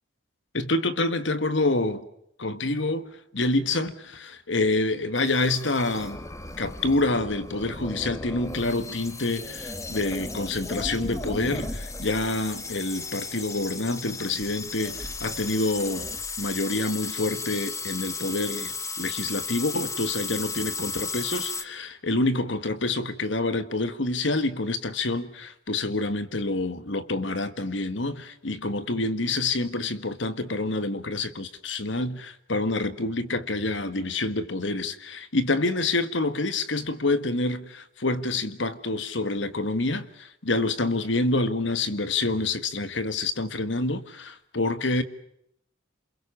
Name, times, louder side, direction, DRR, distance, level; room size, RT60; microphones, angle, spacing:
voice 1, 0.5-2.0 2.4-6.2 6.6-16.1 16.4-45.0, left 2 dB, 70° left, 1.7 m, -27 dB
sound 1, 5.2-21.6, left 3 dB, 15° left, 1.5 m, -35 dB
28.5 x 22.0 x 7.2 m
head